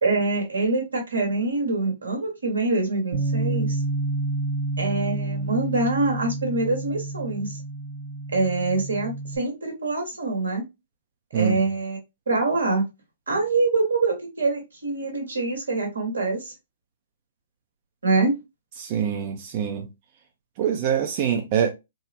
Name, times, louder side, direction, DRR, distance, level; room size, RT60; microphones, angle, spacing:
voice 1, 0.0-3.8 4.8-7.6 8.3-10.6 11.3-12.0 12.3-12.8 13.3-16.5 18.0-18.3, right 3 dB, 85° right, 1.3 m, -25 dB
Bass guitar, 3.1-9.4, right 2 dB, 60° right, 1.1 m, -29 dB
voice 2, 18.8-19.9 20.6-21.7, right 8 dB, 40° right, 0.5 m, -24 dB
3.6 x 2.0 x 2.7 m
hypercardioid pair, 125°, 0 cm